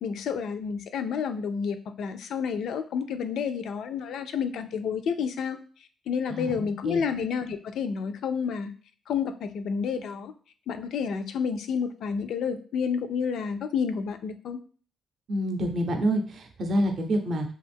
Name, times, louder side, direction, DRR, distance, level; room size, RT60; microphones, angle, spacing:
voice 1, 0.0-5.6 6.1-8.7 9.1-10.3 10.7-14.6, left 6 dB, 75° left, 9 dB, 0.3 m, -30 dB
voice 2, 6.3-7.0 15.3-17.5, equal, 55° right, 5 dB, 0.5 m, -27 dB
2.6 x 2.3 x 3.4 m, 0.42 s
cardioid pair, 90°, 0 cm